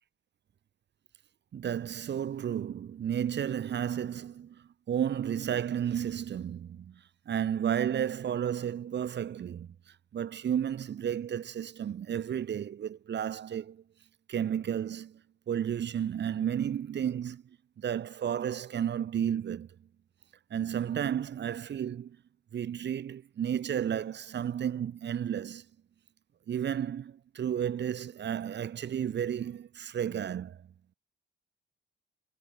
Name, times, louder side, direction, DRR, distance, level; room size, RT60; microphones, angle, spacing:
voice 1, 1.5-13.8 14.3-15.2 15.5-17.4 17.8-19.7 20.5-22.2 22.5-25.6 26.5-30.7, right 9 dB, 60° right, 6.7 m, -32 dB
cardioid pair, 90°, 20 cm